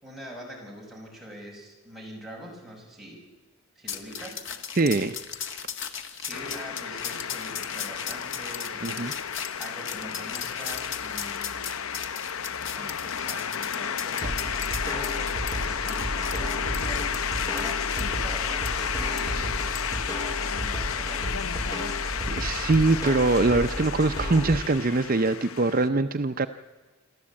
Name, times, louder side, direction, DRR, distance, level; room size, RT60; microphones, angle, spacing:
voice 1, 0.0-3.2 3.8-4.4 6.2-11.9 12.6-14.5 14.8-15.3 15.6-23.0, equal, ahead, -3 dB, 6.3 m, -43 dB
sound 1, 3.9-18.0 18.6-18.7 19.2-19.3 19.7-19.9, left 7 dB, 55° left, 1.7 m, -37 dB
voice 2, 4.8-5.2 8.8-9.1 22.3-26.5, right 3 dB, 40° right, 8 dB, 0.6 m, -23 dB
sound 2, 6.3-25.9, left 8 dB, 70° left, 0.7 m, -32 dB
sound 3, 14.2-24.6, equal, 15° left, 4.0 m, -33 dB
27.0 x 13.5 x 8.7 m, 1.3 s
head